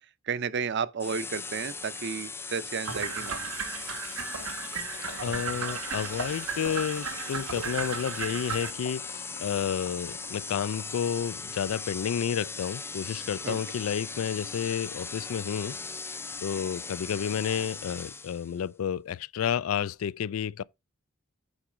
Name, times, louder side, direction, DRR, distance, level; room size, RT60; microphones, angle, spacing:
voice 1, 0.3-3.5 13.4-13.6, right 6 dB, 55° right, 0.5 m, -32 dB
sound 1, 1.0-18.6, left 4 dB, 10° left, 0.4 m, -39 dB
sound 2, 2.8-8.7, right 6 dB, 85° right, 1.1 m, -35 dB
sound 3, 4.8-10.8, left 3 dB, 45° left, 1.1 m, -46 dB
voice 2, 5.2-16.1 16.4-20.6, left 8 dB, 85° left, 0.3 m, -31 dB
8.8 x 4.6 x 5.0 m
head